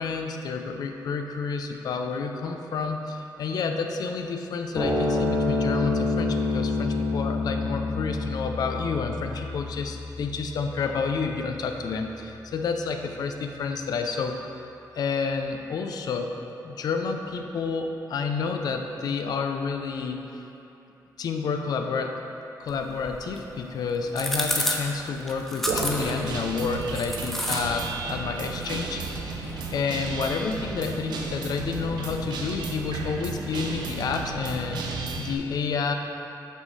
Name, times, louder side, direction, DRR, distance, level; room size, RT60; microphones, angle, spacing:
voice 1, 0.0-14.4 14.9-16.3 16.6-20.4 21.2-22.2 22.6-29.3 29.7-35.9, left 5 dB, 65° left, 5 dB, 0.5 m, -30 dB
sound 1, 4.7-11.4, left 2 dB, 25° left, 1.1 m, -28 dB
sound 2, 22.7-34.3, equal, 5° left, 0.6 m, -35 dB
Guitar, 25.7-35.3, right 4 dB, 80° right, 0.7 m, -33 dB
5.9 x 5.6 x 4.0 m, 2.9 s
wide cardioid pair, 145°, 7 cm